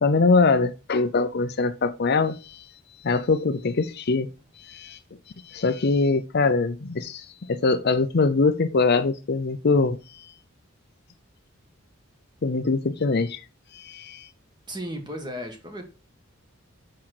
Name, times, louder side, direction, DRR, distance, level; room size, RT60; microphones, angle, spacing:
voice 1, 0.0-2.6 3.0-4.3 4.6-5.0 5.5-10.0 12.4-13.4 13.7-14.3, left 3 dB, 50° left, 0.6 m, -23 dB
voice 2, 14.7-15.9, equal, 20° right, 1.6 m, -34 dB
6.3 x 5.8 x 4.3 m
head